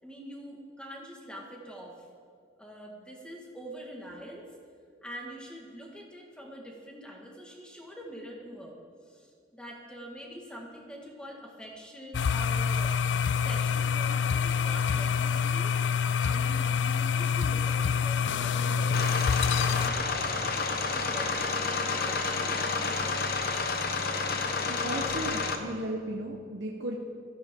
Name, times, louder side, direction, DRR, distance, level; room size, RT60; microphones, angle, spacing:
voice 1, 0.0-2.0 2.6-4.5 5.0-8.8 9.1-19.1 19.6-23.4, equal, 5° left, -1 dB, 1.9 m, -45 dB
sound 1, 12.1-19.9, left 6 dB, 75° left, 0.4 m, -26 dB
sound 2, 18.9-25.6, left 4 dB, 55° left, 1.0 m, -30 dB
voice 2, 24.7-27.0, right 1 dB, 75° right, -1 dB, 1.1 m, -35 dB
16.5 x 14.0 x 3.8 m, 2.2 s
head